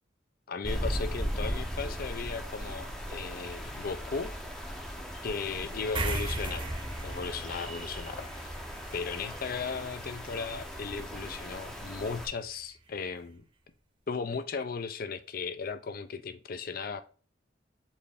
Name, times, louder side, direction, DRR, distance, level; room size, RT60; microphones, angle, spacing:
voice 1, 0.5-4.3 5.2-6.7 7.0-8.5 8.9-13.4 14.1-17.0, left 5 dB, 50° left, 0.5 m, -36 dB
sound 1, 0.6-12.3, equal, 5° left, 0.6 m, -38 dB
sound 2, 3.4-9.8, left 1 dB, 90° left, 1.2 m, -55 dB
sound 3, 5.9-12.7, right 2 dB, 25° right, 0.8 m, -39 dB
4.3 x 3.2 x 3.5 m
head